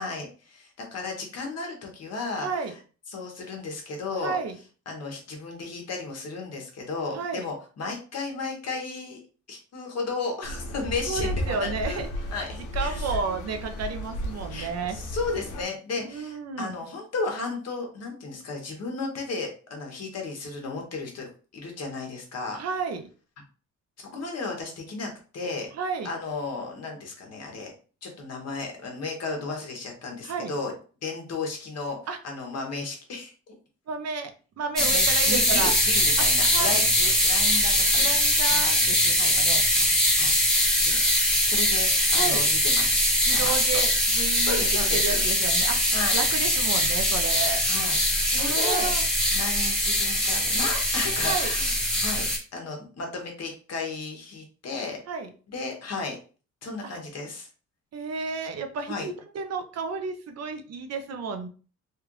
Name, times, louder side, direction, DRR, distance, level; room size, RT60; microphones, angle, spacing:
voice 1, 0.0-2.5 3.1-4.4 4.9-9.2 9.5-12.0 12.3-13.2 14.5-22.6 24.0-25.7 26.0-27.7 28.0-30.7 31.0-32.0 32.2-33.3 34.8-38.1 38.5-38.6 39.2-39.3 39.7-39.9 40.1-40.4 40.8-41.0 41.4-43.0 43.3-43.5 44.5-45.2 45.9-46.2 47.6-48.0 48.2-48.9 49.3-55.0 55.5-56.2 56.6-57.5 58.9-59.1, left 3 dB, 55° left, 1 dB, 1.2 m, -34 dB
voice 2, 2.4-2.7 4.2-4.6 7.1-7.5 11.1-12.1 12.5-15.0 16.0-16.7 22.5-23.0 25.7-26.1 30.2-30.5 32.1-32.2 33.9-34.3 34.6-35.7 36.2-36.8 38.0-39.6 42.1-42.4 43.3-47.6 48.4-49.0 51.3-51.5 55.1-55.3 56.8-56.9 57.9-61.5, right 5 dB, 55° right, 6 dB, 0.7 m, -32 dB
sound 1, 10.4-15.6, equal, 75° left, 0.8 m, -34 dB
sound 2, 34.8-52.4, equal, ahead, 1.1 m, -22 dB
3.2 x 2.4 x 3.1 m, 0.37 s
cardioid pair, 90°, 30 cm